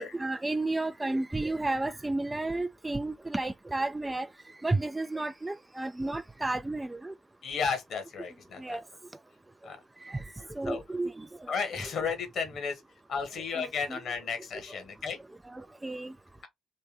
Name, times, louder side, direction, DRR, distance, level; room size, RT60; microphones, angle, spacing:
voice 1, 0.0-4.3 4.6-7.1 8.6-8.8 10.1-10.2 10.5-11.3 13.6-14.0 15.5-16.1, right 2 dB, 15° right, 0.3 m, -32 dB
voice 2, 7.4-8.8 9.6-9.8 10.6-10.8 11.5-12.8 13.1-15.2, left 5 dB, 50° left, 1.3 m, -33 dB
3.3 x 3.1 x 2.9 m
figure-of-eight pair, 40°, 0 cm